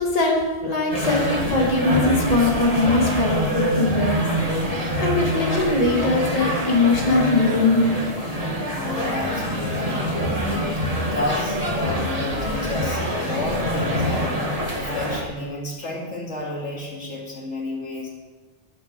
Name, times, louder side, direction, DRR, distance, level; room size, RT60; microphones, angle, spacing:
voice 1, 0.0-4.3 5.0-7.8, left 2 dB, 30° left, -1 dB, 2.0 m, -21 dB
sound 1, 0.9-15.2, equal, 30° right, 2.1 m, -25 dB
voice 2, 8.7-10.1 10.5-14.4 14.7-18.1, left 2 dB, 70° left, -3 dB, 2.8 m, -31 dB
11.5 x 8.3 x 6.8 m, 1.4 s
omnidirectional pair, 1.2 m